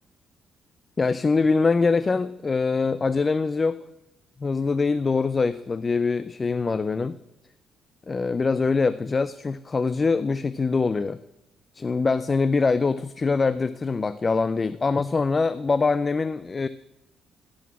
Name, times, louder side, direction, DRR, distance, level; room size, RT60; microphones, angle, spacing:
voice 1, 1.0-3.8 4.4-7.1 8.1-11.2 11.7-16.7, left 4 dB, 30° left, 14 dB, 0.4 m, -23 dB
12.5 x 6.3 x 6.0 m, 0.93 s
cardioid pair, 90°, 0 cm